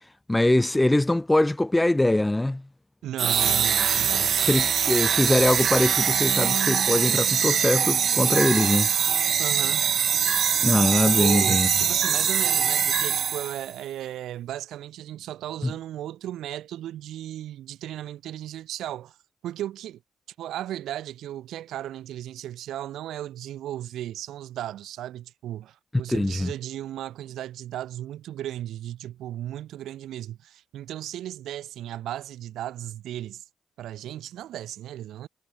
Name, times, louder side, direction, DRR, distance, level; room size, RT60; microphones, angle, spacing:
voice 1, 0.3-2.6 4.2-8.9 10.6-11.7 15.6-15.7 26.1-26.5, left 1 dB, 10° left, 4.1 m, -22 dB
voice 2, 3.0-4.6 9.4-9.9 11.1-19.2 19.4-20.0 20.4-33.4 33.8-35.3, right 12 dB, 80° right, 7.6 m, -35 dB
sound 1, 3.2-13.7, right 8 dB, 55° right, 1.5 m, -23 dB
cardioid pair, 90°, 0 cm